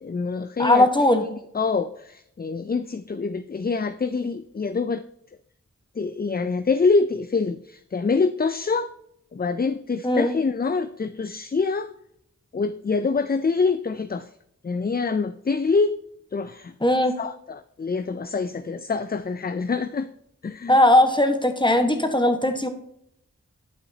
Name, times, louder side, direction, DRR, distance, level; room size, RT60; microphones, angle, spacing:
voice 1, 0.0-0.9 1.2-5.0 6.0-8.9 9.3-11.9 12.5-14.3 14.6-16.0 16.3-16.7 17.2-20.1 20.4-20.8, left 4 dB, 30° left, 12 dB, 0.4 m, -25 dB
voice 2, 0.6-1.2 10.0-10.3 16.8-17.1 20.7-22.7, left 1 dB, 15° left, 6 dB, 1.3 m, -19 dB
11.0 x 5.6 x 2.8 m, 0.75 s
wide cardioid pair, 40°, 31 cm